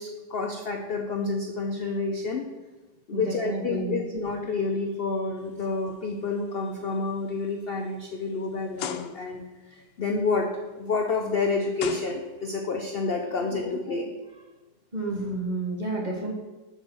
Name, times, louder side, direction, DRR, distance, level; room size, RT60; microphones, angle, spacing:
voice 1, 0.0-2.5 3.1-9.5 9.8-14.1, left 3 dB, 65° left, 3 dB, 0.5 m, -29 dB
voice 2, 3.1-4.0 13.3-13.7 14.9-16.3, right 2 dB, 30° right, -1 dB, 1.0 m, -31 dB
sound 1, 5.6-5.9 6.4-6.6 7.3-7.4 8.8-9.5 11.0-11.1 11.8-12.7, left 9 dB, 85° left, 1.2 m, -37 dB
6.8 x 4.4 x 6.1 m, 1.2 s
omnidirectional pair, 1.8 m